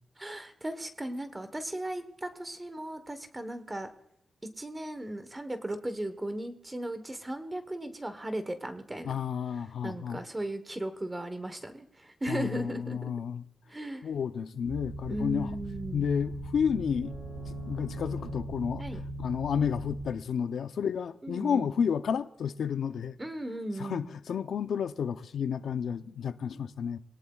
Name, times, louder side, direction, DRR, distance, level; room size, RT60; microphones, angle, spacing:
voice 1, 0.2-3.9 4.6-9.2 9.8-13.1 13.7-14.1 15.1-16.1 18.8-19.0 21.2-21.7 23.2-24.1, right 1 dB, 15° right, 1.1 m, -36 dB
voice 2, 9.0-10.2 12.3-13.4 14.0-15.5 15.9-17.1 17.5-18.9 19.2-23.2 23.8-27.0, left 7 dB, 75° left, 0.6 m, -31 dB
sound 1, 14.6-20.0, right 1 dB, 55° right, 6.5 m, -39 dB
24.0 x 18.0 x 2.4 m
wide cardioid pair, 170°, 0 cm